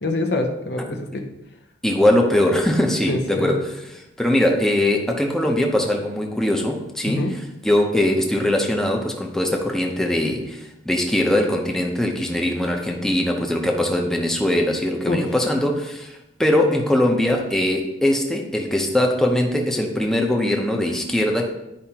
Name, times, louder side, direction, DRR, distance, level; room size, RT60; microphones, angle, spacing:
voice 1, 0.0-1.3 3.1-3.5 7.1-7.4 15.1-15.2, left 2 dB, 70° left, 3 dB, 0.9 m, -25 dB
voice 2, 1.8-7.3 7.6-21.5, left 1 dB, 5° left, 1 dB, 0.7 m, -21 dB
10.5 x 4.9 x 2.8 m, 0.92 s
head